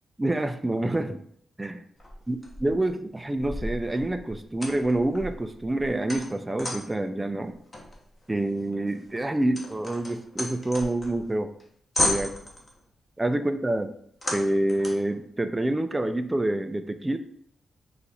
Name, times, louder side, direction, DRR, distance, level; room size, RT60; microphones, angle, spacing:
voice 1, 0.2-1.2 1.6-1.8 2.3-7.6 8.3-11.5 12.0-12.4 13.2-14.0 14.3-17.2, right 1 dB, 15° right, 9 dB, 0.3 m, -27 dB
sound 1, 2.0-2.9 3.4-7.0 7.7-11.3 11.6-11.7 11.9-12.8 14.2-15.1, left 1 dB, 25° left, 0.9 m, -33 dB
4.1 x 2.4 x 3.9 m, 0.66 s
cardioid pair, 70°, 0 cm